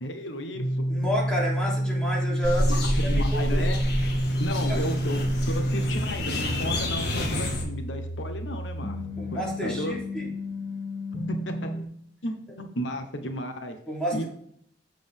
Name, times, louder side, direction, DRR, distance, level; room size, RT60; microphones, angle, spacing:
voice 1, 0.0-0.9 2.7-3.8 4.4-9.0 9.3-10.0 11.3-11.7 12.2-13.8 14.1-14.2, left 1 dB, 85° left, 6 dB, 1.1 m, -33 dB
sound 1, 0.5-11.8, equal, 40° left, 2.0 m, -29 dB
voice 2, 0.9-3.7 4.7-4.8 9.2-10.3 13.9-14.2, equal, 5° left, -5 dB, 3.1 m, -31 dB
sound 2, 2.4-7.6, left 1 dB, 60° left, 1.8 m, -28 dB
7.6 x 7.5 x 3.6 m, 0.67 s
head